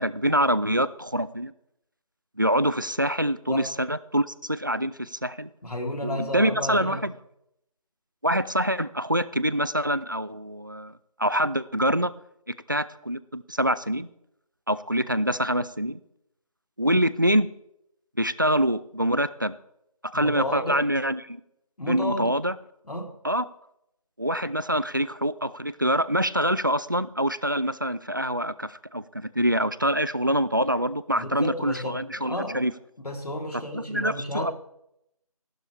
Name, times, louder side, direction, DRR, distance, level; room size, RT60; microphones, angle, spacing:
voice 1, 0.0-1.5 2.4-5.5 6.0-7.1 8.2-10.9 11.2-12.1 12.7-14.1 14.7-16.0 16.8-17.5 18.2-19.6 20.0-21.4 21.9-22.5 23.2-23.5 24.2-32.7 33.7-34.5, equal, 35° right, 17 dB, 0.4 m, -25 dB
voice 2, 5.6-7.0 20.1-20.8 21.8-22.3 22.9-23.1 31.1-32.6 33.0-34.5, left 1 dB, 90° left, 2 dB, 3.4 m, -32 dB
15.5 x 12.0 x 3.4 m, 0.78 s
figure-of-eight pair, 175°, 19 cm